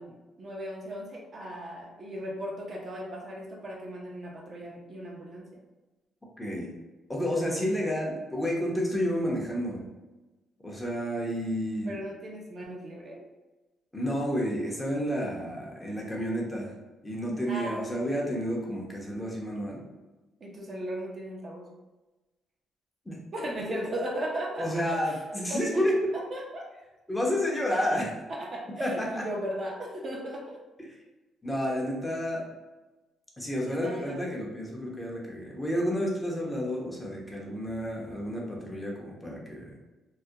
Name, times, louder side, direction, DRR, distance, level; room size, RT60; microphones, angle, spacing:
voice 1, 0.0-5.6 7.5-7.6 11.9-13.2 17.5-17.9 20.4-21.7 23.3-25.2 25.5-25.6 26.1-26.7 28.3-30.6 33.7-34.3, equal, 45° right, -1 dB, 0.5 m, -37 dB
voice 2, 6.4-6.7 7.1-9.8 10.6-12.0 13.9-16.7 17.0-19.8 23.1-23.2 24.6-26.1 27.1-28.1 28.8-29.2 31.4-32.4 33.4-39.7, equal, 10° left, -2 dB, 0.7 m, -30 dB
2.3 x 2.1 x 2.7 m, 1.1 s
cardioid pair, 90°, 0 cm